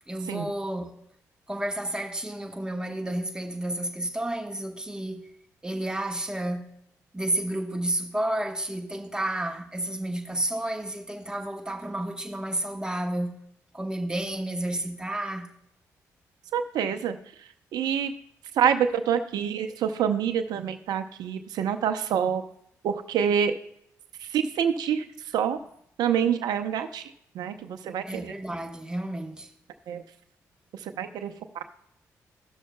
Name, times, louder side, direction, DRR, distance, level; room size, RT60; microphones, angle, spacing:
voice 1, 0.1-1.0 1.5-5.3 5.6-6.8 7.1-13.4 13.7-15.5 28.1-29.5, right 1 dB, 10° right, 1.2 m, -31 dB
voice 2, 16.5-18.1 18.5-22.4 22.8-23.5 24.2-25.1 25.3-25.6 26.0-28.3 29.9-30.0 30.7-31.6, right 8 dB, 75° right, 0.6 m, -27 dB
15.0 x 6.4 x 2.2 m
hypercardioid pair, 50°, 7 cm